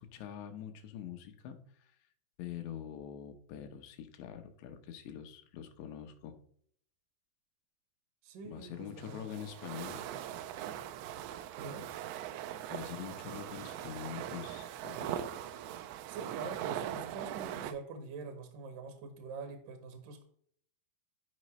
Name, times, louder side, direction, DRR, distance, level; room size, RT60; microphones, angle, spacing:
voice 1, 0.0-1.9 2.4-6.4 8.4-10.1 12.7-15.2, left 9 dB, 85° left, 6 dB, 3.1 m, -45 dB
voice 2, 8.2-9.3 11.6-11.8 16.1-20.2, right 4 dB, 70° right, 6 dB, 2.1 m, -45 dB
sound 1, 8.7-17.7, right 11 dB, 85° right, 2.8 m, -41 dB
12.0 x 5.0 x 3.1 m, 0.64 s
omnidirectional pair, 5.0 m